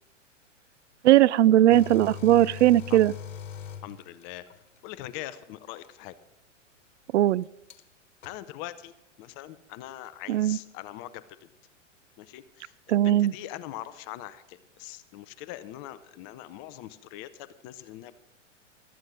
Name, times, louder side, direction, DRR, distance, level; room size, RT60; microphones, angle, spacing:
voice 1, 1.0-3.1 7.1-7.4 10.3-10.6 12.9-13.3, right 13 dB, 65° right, 21 dB, 0.5 m, -19 dB
sound 1, 1.7-4.6 5.8-5.9 7.7-7.8 8.2-8.3, left 8 dB, 75° left, 1.4 m, -40 dB
voice 2, 3.8-4.4 4.8-6.2 8.2-8.9 9.2-11.5 12.2-18.1, left 14 dB, 30° left, 14 dB, 0.6 m, -42 dB
15.0 x 13.0 x 3.9 m, 0.88 s
hypercardioid pair, 110°, 38 cm